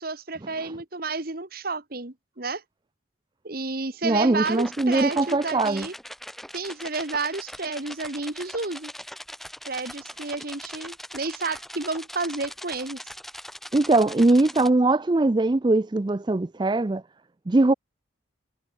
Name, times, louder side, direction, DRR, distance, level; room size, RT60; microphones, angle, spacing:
voice 1, 0.0-2.6 3.4-5.9 6.5-8.9 9.7-13.0, right 3 dB, 50° right, 1.7 m, -31 dB
voice 2, 4.0-5.9 13.7-17.0 17.5-17.7, right 2 dB, 25° right, 0.4 m, -21 dB
sound 1, 4.4-14.7, equal, ahead, 1.4 m, -41 dB
head